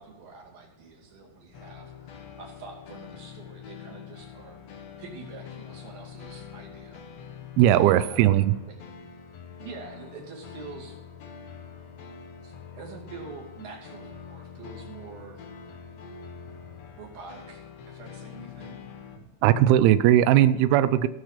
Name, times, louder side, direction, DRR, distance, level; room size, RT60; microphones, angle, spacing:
voice 1, 0.0-7.1 7.7-8.4 8.7-8.8 9.5-11.0 12.4-15.4 17.0-18.8, right 4 dB, 50° right, -1 dB, 3.8 m, -45 dB
sound 1, 1.5-19.2, left 7 dB, 75° left, 1.6 m, -44 dB
voice 2, 7.6-8.5 19.4-21.1, right 12 dB, 90° right, 14 dB, 2.2 m, -18 dB
18.0 x 6.3 x 5.8 m, 1.1 s
omnidirectional pair, 5.0 m